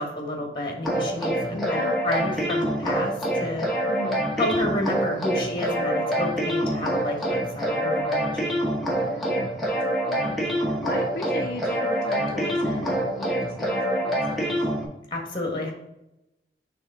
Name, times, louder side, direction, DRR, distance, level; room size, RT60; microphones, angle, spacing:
voice 1, 0.0-3.7 4.4-8.4 15.1-15.7, left 1 dB, 25° left, 0 dB, 1.3 m, -30 dB
sound 1, 0.8-14.8, right 1 dB, ahead, 1.0 m, -26 dB
voice 2, 1.5-2.0 3.9-4.2 8.9-14.6, left 2 dB, 55° left, 1 dB, 0.5 m, -37 dB
4.9 x 3.5 x 5.4 m, 0.90 s
head